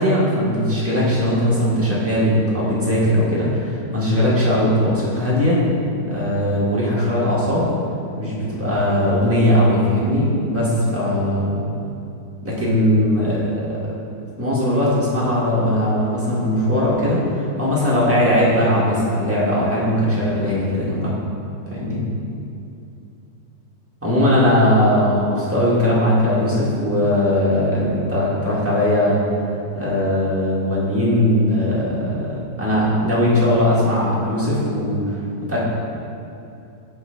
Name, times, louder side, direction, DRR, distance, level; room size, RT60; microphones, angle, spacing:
voice 1, 0.0-5.6 6.1-7.7 8.2-11.5 12.4-13.6 14.4-21.1 21.7-22.0 24.0-29.2 29.7-35.6, left 1 dB, 10° right, -7 dB, 1.2 m, -19 dB
5.8 x 4.0 x 5.6 m, 2.7 s
omnidirectional pair, 1.9 m